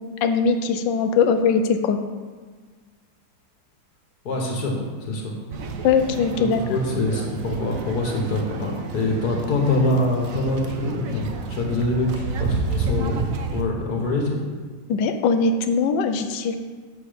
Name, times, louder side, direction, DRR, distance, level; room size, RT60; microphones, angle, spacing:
voice 1, 0.2-2.0 5.8-6.6 14.9-16.6, left 5 dB, 80° left, 8 dB, 1.3 m, -21 dB
voice 2, 4.3-4.7 5.0-5.3 6.4-14.4, left 2 dB, 55° left, 0 dB, 1.9 m, -25 dB
sound 1, 5.5-13.6, right 3 dB, 60° right, 0.9 m, -30 dB
7.4 x 6.0 x 5.2 m, 1.5 s
omnidirectional pair, 2.0 m